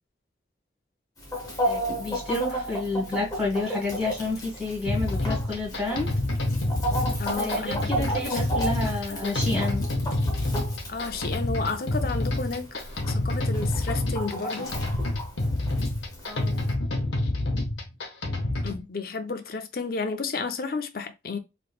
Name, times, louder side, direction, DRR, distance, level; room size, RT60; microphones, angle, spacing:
Chicken rooster, 1.2-16.7, right 1 dB, 20° left, 0.9 m, -34 dB
voice 1, 1.6-6.1 7.1-9.8 16.2-16.5, left 2 dB, 10° right, 1.7 m, -30 dB
sound 1, 4.9-18.8, left 1 dB, 85° left, 0.8 m, -28 dB
voice 2, 7.2-9.5 10.9-14.7 18.6-21.4, left 4 dB, 50° left, 0.5 m, -32 dB
3.3 x 3.1 x 2.3 m
head